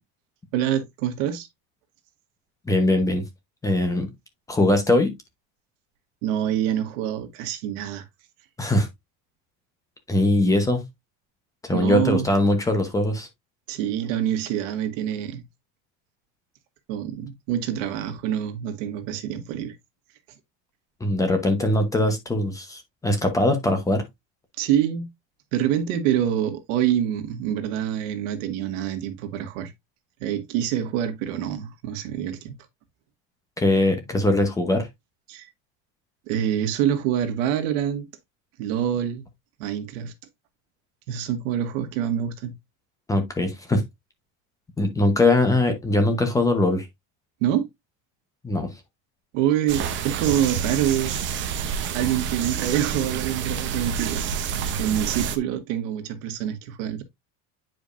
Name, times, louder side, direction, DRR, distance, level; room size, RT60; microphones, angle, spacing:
voice 1, 0.5-1.5 6.2-8.0 11.7-12.3 13.7-15.4 16.9-19.7 24.6-25.1 25.5-29.7 30.2-32.6 35.3-35.5 36.3-38.1 38.6-39.3 39.6-40.1 41.1-42.6 47.4-47.7 49.3-51.2 51.9-54.3 54.8-57.0, right 10 dB, 85° right, 1.6 m, -26 dB
voice 2, 2.7-3.2 3.6-4.1 4.5-5.1 8.6-8.9 10.1-10.8 11.6-13.3 21.0-24.0 33.6-34.9 43.1-43.8 44.8-46.9 48.4-48.7, left 1 dB, 10° left, 0.9 m, -21 dB
sound 1, 49.7-55.4, right 7 dB, 30° right, 0.8 m, -28 dB
9.1 x 5.1 x 2.5 m
cardioid pair, 180°, 37 cm